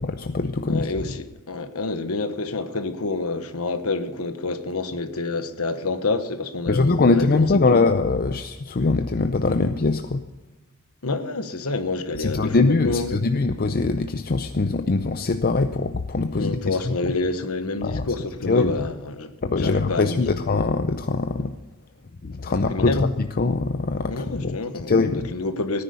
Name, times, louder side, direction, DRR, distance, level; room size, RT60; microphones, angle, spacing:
voice 1, 0.0-0.9 6.7-10.2 12.2-16.9 17.8-18.1 18.5-18.7 19.4-21.6 22.2-24.6 24.9-25.3, left 3 dB, 40° left, 0.6 m, -22 dB
voice 2, 0.7-7.7 11.0-13.2 16.3-19.3 19.6-20.4 22.5-23.1 24.1-25.8, left 3 dB, 70° left, 1.2 m, -28 dB
17.5 x 10.0 x 6.9 m
head